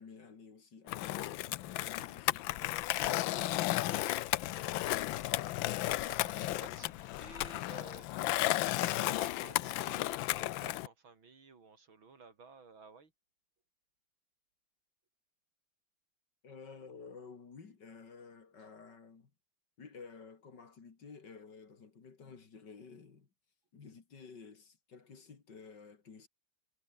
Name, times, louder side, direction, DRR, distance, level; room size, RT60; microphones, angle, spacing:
voice 1, 0.0-3.2 16.4-19.3 19.8-23.3 23.7-26.3, left 5 dB, 60° left, 3.1 m, -53 dB
Skateboard, 0.9-10.9, left 16 dB, 80° left, 1.4 m, -34 dB
voice 2, 5.1-8.1 8.7-13.1, right 4 dB, 85° right, 4.3 m, -55 dB
omnidirectional pair, 2.1 m